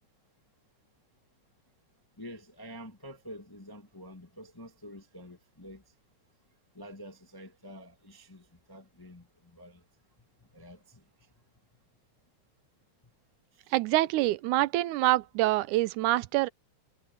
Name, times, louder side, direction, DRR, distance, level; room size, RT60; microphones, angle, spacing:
voice 1, 2.2-5.8 6.7-9.8 10.4-11.0 13.6-13.7 14.2-14.3, equal, 15° left, 0.9 m, -48 dB
voice 2, 13.7-16.5, right 17 dB, 85° right, 2.1 m, -26 dB
omnidirectional pair, 3.4 m